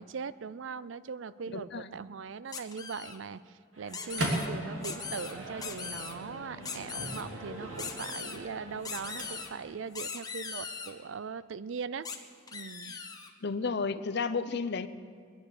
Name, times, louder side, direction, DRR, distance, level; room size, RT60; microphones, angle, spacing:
voice 1, 0.0-12.1 12.5-12.9, right 5 dB, 65° right, 16 dB, 0.5 m, -40 dB
voice 2, 1.5-1.9 12.8-13.0 13.4-14.9, left 4 dB, 60° left, 12 dB, 0.7 m, -32 dB
sound 1, 2.5-3.2 3.9-4.5 4.8-5.3 5.6-6.1 6.6-7.2 7.8-8.4 8.8-9.5 9.9-10.9 12.0-12.2 12.5-13.3, left 6 dB, 20° left, 1.0 m, -40 dB
Microwave oven, 3.7-9.7, right 1 dB, 85° right, 2.6 m, -39 dB
21.0 x 10.5 x 6.6 m, 2.1 s
head